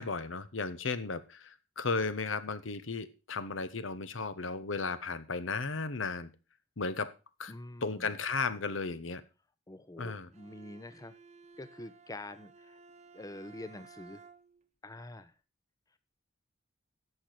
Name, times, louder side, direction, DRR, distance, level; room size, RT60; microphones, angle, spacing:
voice 1, 0.0-6.3 6.8-7.1 7.4-7.5 7.8-9.2 10.0-10.3, left 4 dB, 75° left, 13 dB, 1.0 m, -35 dB
voice 2, 7.5-8.1 9.7-11.1 11.6-12.8 13.1-14.2 14.8-15.3, left 1 dB, 20° left, 13 dB, 0.6 m, -46 dB
Bowed string instrument, 10.3-14.7, right 4 dB, 35° right, 0.8 m, -56 dB
11.0 x 6.9 x 5.9 m, 0.32 s
head